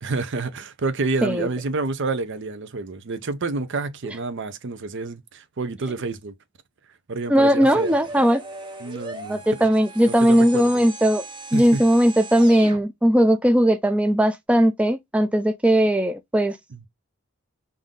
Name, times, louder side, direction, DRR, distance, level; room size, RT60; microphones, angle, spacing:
voice 1, 0.0-6.3 7.1-7.9 8.8-9.7 10.1-10.7 11.5-11.9 16.7-16.8, right 3 dB, 60° right, 0.6 m, -29 dB
voice 2, 7.3-8.4 9.3-11.2 11.5-16.6, equal, 5° right, 0.4 m, -18 dB
sound 1, 7.7-12.8, right 3 dB, 20° right, 1.0 m, -38 dB
5.5 x 2.6 x 3.7 m
head